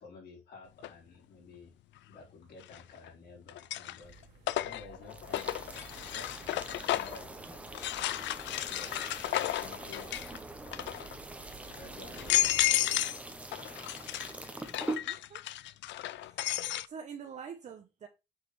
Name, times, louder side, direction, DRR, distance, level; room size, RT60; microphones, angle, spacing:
voice 1, 0.0-1.7 2.1-4.2 4.6-8.2 8.6-9.0 9.5-11.0 11.7-12.9, left 4 dB, 60° left, 4.3 m, -52 dB
sound 1, 0.8-0.9 2.6-3.1 3.5-7.2 7.7-10.4 10.7-11.2 11.7-11.8 12.1-13.2 13.5-16.9, left 14 dB, 85° left, 0.5 m, -33 dB
sound 2, 4.0-12.7, right 6 dB, 65° right, 2.9 m, -55 dB
sound 3, 5.1-15.0, right 2 dB, 5° right, 0.8 m, -44 dB
voice 2, 14.3-14.7 15.0-15.4 16.0-16.6 16.8-18.1, right 7 dB, 40° right, 0.8 m, -47 dB
7.7 x 6.5 x 3.2 m
cardioid pair, 175°, 19 cm